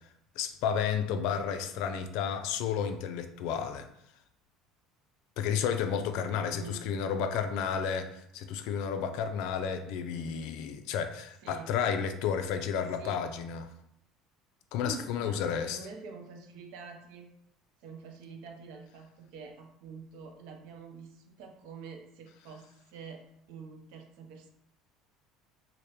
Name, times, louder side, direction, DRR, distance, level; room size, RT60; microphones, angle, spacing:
voice 1, 0.4-3.9 5.4-13.7 14.7-15.8, left 7 dB, 65° left, 8 dB, 0.4 m, -32 dB
voice 2, 6.4-6.9 11.4-11.7 13.0-13.3 14.8-17.3 17.8-24.5, right 5 dB, 70° right, 4 dB, 0.6 m, -46 dB
4.9 x 2.1 x 2.9 m, 0.74 s
cardioid pair, 165°, 0 cm